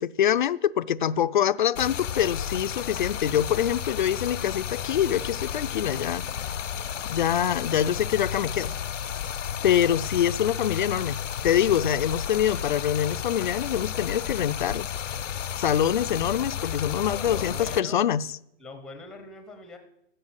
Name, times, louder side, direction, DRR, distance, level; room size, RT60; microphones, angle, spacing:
voice 1, 0.0-6.3 7.1-8.7 9.6-11.2 11.4-14.9 15.6-18.3, left 10 dB, 45° left, 14 dB, 0.4 m, -25 dB
Stream, 1.7-17.8, left 9 dB, 90° left, 0.7 m, -32 dB
voice 2, 17.0-18.0 18.6-19.8, left 3 dB, ahead, 6 dB, 0.7 m, -42 dB
13.0 x 8.1 x 8.0 m, 0.81 s
hypercardioid pair, 155°, 36 cm